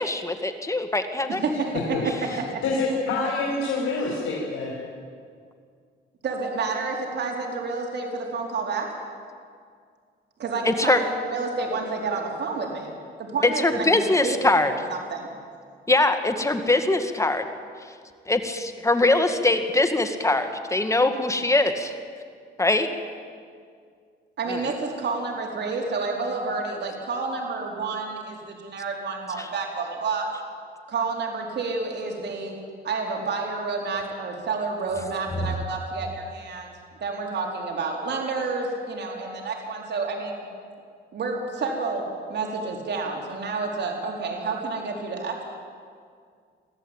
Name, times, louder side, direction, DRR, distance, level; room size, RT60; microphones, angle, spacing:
voice 1, 0.0-1.4 10.7-11.0 13.4-14.7 15.9-17.5 18.3-21.9 22.6-22.9 24.5-24.7 29.4-29.5, left 2 dB, 15° left, 8 dB, 2.0 m, -22 dB
voice 2, 1.3-2.1 2.5-2.6 6.2-8.9 10.4-12.9 13.2-15.3 24.4-30.3 30.9-32.6 32.8-36.7 37.0-40.5 41.1-45.4, right 4 dB, 60° right, 1 dB, 4.1 m, -29 dB
voice 3, 1.9-2.4 2.6-4.7, left 3 dB, 85° left, -3 dB, 4.3 m, -26 dB
23.5 x 14.5 x 8.9 m, 2.1 s
cardioid pair, 90°, 20 cm